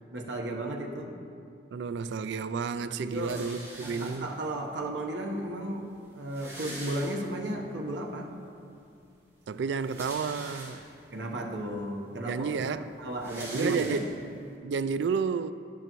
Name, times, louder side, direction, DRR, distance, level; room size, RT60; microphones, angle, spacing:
voice 1, 0.1-1.2 3.0-3.4 3.8-8.3 11.1-14.0, right 1 dB, 90° right, 1.0 m, -34 dB
voice 2, 1.7-4.3 9.5-10.8 12.2-12.9 13.5-14.0 14.6-15.5, right 5 dB, 75° right, 0.3 m, -31 dB
sound 1, 3.1-4.5 5.4-5.5 5.7-5.8 6.0-7.6 8.1-8.2 9.6-11.1 11.7-11.8 12.1-14.4, right 1 dB, 15° right, 2.3 m, -44 dB
11.0 x 9.5 x 3.0 m
head